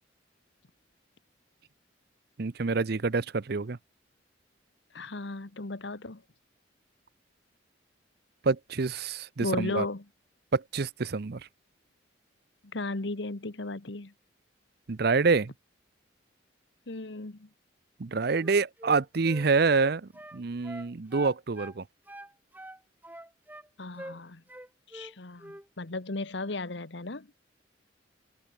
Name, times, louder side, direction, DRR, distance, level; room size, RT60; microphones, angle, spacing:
voice 1, 2.4-3.8 8.4-9.8 10.5-11.4 14.9-15.5 18.0-21.8, right 4 dB, 55° right, 0.6 m, -27 dB
voice 2, 4.9-6.2 9.4-10.0 12.7-14.1 16.9-17.5 23.8-24.4 24.9-27.3, left 2 dB, 65° left, 1.3 m, -35 dB
Wind instrument woodwind instrument, 18.3-21.8 22.1-23.7 24.0-24.2 24.5-25.1 25.4-25.7, right 1 dB, 10° right, 6.4 m, -44 dB
open air
head